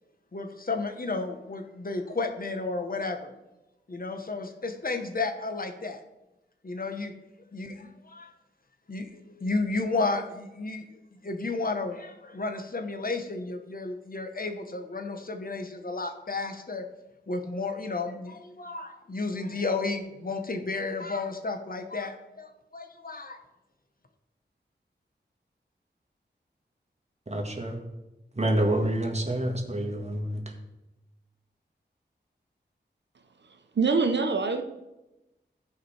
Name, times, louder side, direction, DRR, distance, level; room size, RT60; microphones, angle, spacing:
voice 1, 0.3-3.3 3.9-6.0 6.6-7.1 7.5-8.3 8.9-10.8 11.2-16.8 17.3-23.4, left 3 dB, 50° left, 6 dB, 1.1 m, -32 dB
voice 2, 27.3-27.8 28.4-30.4, right 1 dB, 35° right, 1 dB, 1.9 m, -27 dB
voice 3, 33.7-34.6, right 4 dB, 70° right, 6 dB, 0.8 m, -24 dB
14.0 x 5.0 x 4.4 m, 0.98 s
wide cardioid pair, 70°, 19 cm